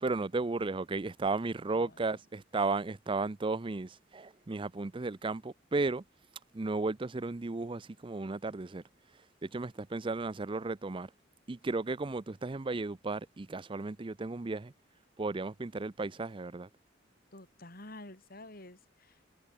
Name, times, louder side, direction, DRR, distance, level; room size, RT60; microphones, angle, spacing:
voice 1, 0.0-6.0 6.5-8.8 9.4-11.1 11.5-14.7 15.2-16.7, right 3 dB, 25° right, 0.5 m, -34 dB
voice 2, 1.7-2.2 17.3-19.4, left 2 dB, 50° left, 4.7 m, -50 dB
head